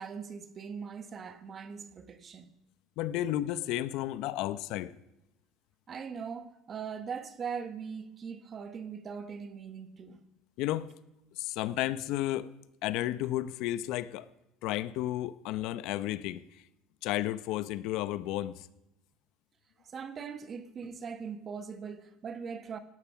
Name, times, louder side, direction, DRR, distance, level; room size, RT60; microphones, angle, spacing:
voice 1, 0.0-2.5 5.9-10.2 19.8-22.8, right 6 dB, 30° right, 1.2 m, -40 dB
voice 2, 3.0-5.0 10.6-10.9 11.3-12.5 12.8-14.3 14.6-16.6 17.0-18.7, left 14 dB, 65° left, 0.7 m, -32 dB
17.5 x 12.0 x 5.8 m
cardioid pair, 140°, 0 cm